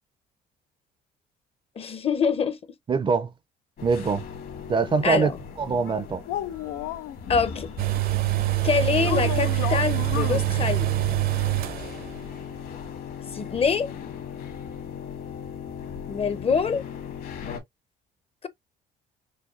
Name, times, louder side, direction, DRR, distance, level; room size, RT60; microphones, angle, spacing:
voice 1, 1.8-2.6 5.0-5.3 7.3-7.7 8.6-10.9 13.3-13.9 16.1-16.8 18.4-18.5, left 6 dB, 35° left, 0.7 m, -25 dB
voice 2, 2.9-3.3 3.8-4.2 4.7-6.2, right 5 dB, 30° right, 0.5 m, -24 dB
sound 1, 3.8-17.6, left 7 dB, 60° left, 1.7 m, -38 dB
sound 2, 5.9-7.2 8.9-10.4, left 12 dB, 90° left, 0.5 m, -32 dB
sound 3, 7.8-12.2 12.5-12.6, right 17 dB, 60° right, 0.7 m, -25 dB
6.3 x 2.2 x 2.5 m
cardioid pair, 110°, 17 cm